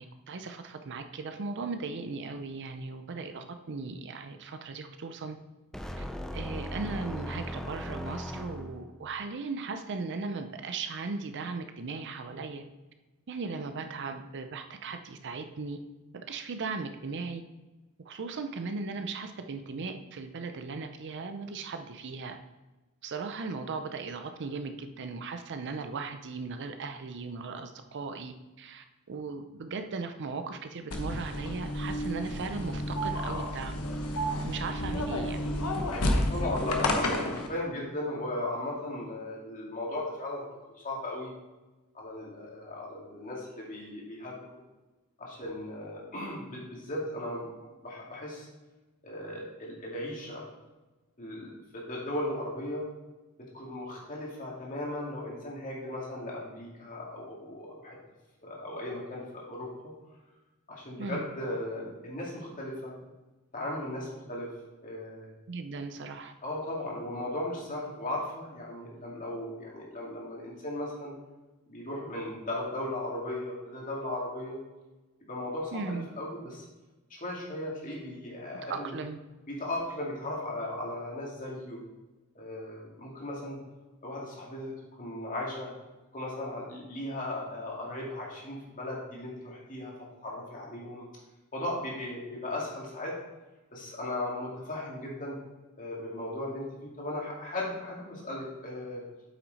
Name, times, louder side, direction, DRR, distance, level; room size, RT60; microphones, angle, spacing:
voice 1, 0.0-5.4 6.0-6.1 6.3-12.6 13.3-15.8 16.1-17.4 18.0-22.4 23.0-33.8 34.4-35.5 61.0-61.3 65.5-66.3 75.7-76.1 78.7-79.2, right 4 dB, 55° right, 8 dB, 0.6 m, -37 dB
sound 1, 5.7-9.0, equal, ahead, 0.5 m, -38 dB
sound 2, 30.9-37.5, left 1 dB, 85° left, 1.1 m, -31 dB
voice 2, 36.3-40.5 40.8-41.3 41.9-44.6 45.2-47.5 47.8-48.5 49.0-50.4 51.2-52.8 53.5-58.0 58.4-59.7 60.7-62.9 63.5-64.5 64.8-65.4 66.4-71.1 71.7-74.6 75.3-76.7 77.1-78.9 79.5-81.8 82.3-83.6 84.0-84.7 85.0-85.7 86.1-89.9 90.2-91.0 91.5-93.2 93.7-95.4 95.8-99.0, left 1 dB, 40° left, -3 dB, 2.3 m, -37 dB
8.2 x 6.0 x 4.1 m, 1.1 s
head